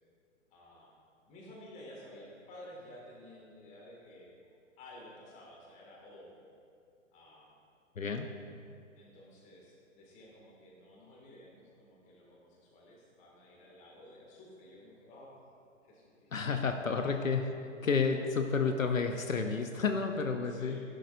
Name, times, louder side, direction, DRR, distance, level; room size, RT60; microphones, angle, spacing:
voice 1, 0.5-0.9 1.3-4.4 4.8-6.4 7.1-7.5 9.0-15.4 15.8-16.8 17.1-17.3 18.1-18.2 20.4-20.8, left 1 dB, 20° left, -3 dB, 2.2 m, -53 dB
voice 2, 8.0-8.3 16.3-17.4 17.8-20.8, left 5 dB, 75° left, 5 dB, 0.9 m, -30 dB
15.5 x 11.5 x 2.6 m, 2.4 s
figure-of-eight pair, 125°, 40 cm